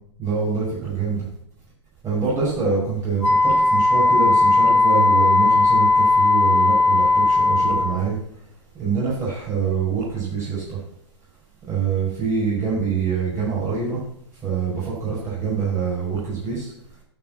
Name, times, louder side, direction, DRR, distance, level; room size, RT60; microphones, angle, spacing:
voice 1, 0.2-1.3 2.0-8.2 8.7-10.8 11.7-14.0 14.3-16.7, right 5 dB, 20° right, -8 dB, 5.8 m, -25 dB
Wind instrument woodwind instrument, 3.2-8.0, left 3 dB, 85° left, 2.8 m, -17 dB
11.5 x 5.5 x 7.4 m, 0.69 s
figure-of-eight pair, 115°, 15 cm